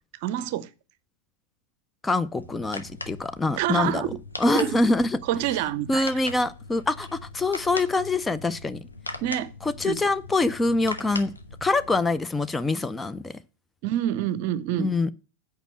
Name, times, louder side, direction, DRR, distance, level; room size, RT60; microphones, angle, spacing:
voice 1, 0.2-0.7 3.6-4.2 4.5-4.8 5.2-6.1 9.2-9.5 9.8-10.1 13.8-14.9, right 12 dB, 50° right, 0.6 m, -27 dB
voice 2, 2.0-4.0 4.4-5.1 5.9-8.8 9.6-11.3 11.6-13.4 14.8-15.1, left 2 dB, 10° left, 0.5 m, -25 dB
sound 1, 2.4-12.0, left 2 dB, 80° left, 1.0 m, -40 dB
8.1 x 5.0 x 7.5 m
figure-of-eight pair, 90°, 0 cm